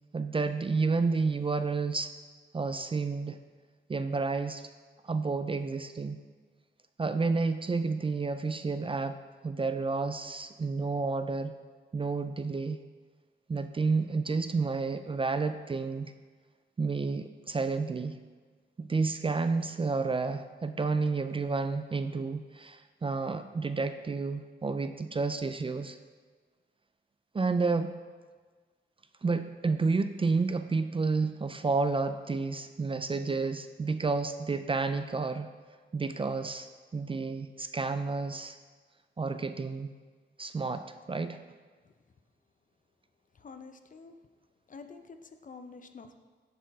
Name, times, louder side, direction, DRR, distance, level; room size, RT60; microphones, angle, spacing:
voice 1, 0.1-2.1 2.5-3.4 3.9-4.6 5.0-6.2 7.0-9.2 9.4-11.5 11.9-12.8 13.5-16.1 16.8-18.2 18.8-26.0 27.3-27.9 29.2-35.5 35.9-36.7 36.9-38.6 39.2-39.9 40.4-41.4, right 4 dB, 30° right, 9 dB, 0.4 m, -30 dB
voice 2, 43.3-44.2 44.7-46.2, left 4 dB, 45° left, 8 dB, 0.6 m, -48 dB
10.0 x 4.4 x 4.1 m, 1.4 s
cardioid pair, 75°, 19 cm